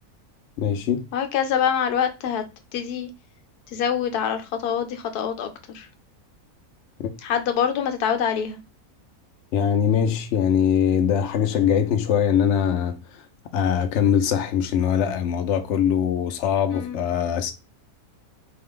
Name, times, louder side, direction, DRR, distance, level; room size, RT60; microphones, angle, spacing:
voice 1, 0.6-1.0 7.0-7.1 9.5-13.2 13.5-17.5, left 8 dB, 60° left, 0.8 m, -22 dB
voice 2, 1.1-2.4 2.7-3.1 3.7-5.9 7.2-8.6 16.7-17.0, left 8 dB, 85° left, 1.2 m, -25 dB
4.1 x 2.3 x 3.6 m
omnidirectional pair, 1.6 m